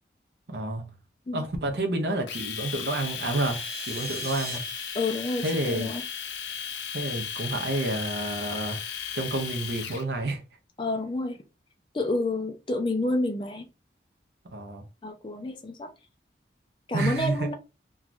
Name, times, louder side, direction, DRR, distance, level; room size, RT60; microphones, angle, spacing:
voice 1, 0.5-0.9 1.3-4.6 5.4-5.9 6.9-8.8 9.1-10.4 14.5-14.8 16.9-17.5, right 2 dB, 65° right, 0.6 m, -29 dB
Domestic sounds home sounds, 2.3-10.0, left 7 dB, 80° left, 0.5 m, -35 dB
sound 1, 3.0-4.6, right 2 dB, 20° right, 1.2 m, -42 dB
voice 2, 4.9-6.0 10.8-11.4 11.9-13.7 15.0-15.9 16.9-17.5, left 2 dB, 25° left, 0.4 m, -29 dB
3.1 x 2.3 x 2.5 m
head